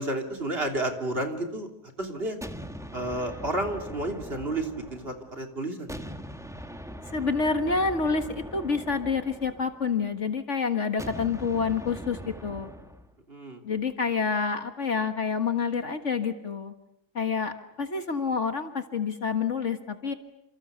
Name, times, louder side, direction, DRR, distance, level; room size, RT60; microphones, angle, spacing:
voice 1, 0.0-1.7 2.0-2.4 2.9-6.0 13.3-13.6, right 1 dB, 35° right, 4 dB, 3.5 m, -31 dB
sound 1, 2.4-5.4 5.9-10.1 11.0-13.1, equal, ahead, 1.7 m, -41 dB
voice 2, 7.0-12.7 13.6-16.7 17.1-20.1, left 5 dB, 50° left, 8 dB, 1.8 m, -28 dB
29.5 x 28.0 x 6.9 m, 0.79 s
omnidirectional pair, 1.7 m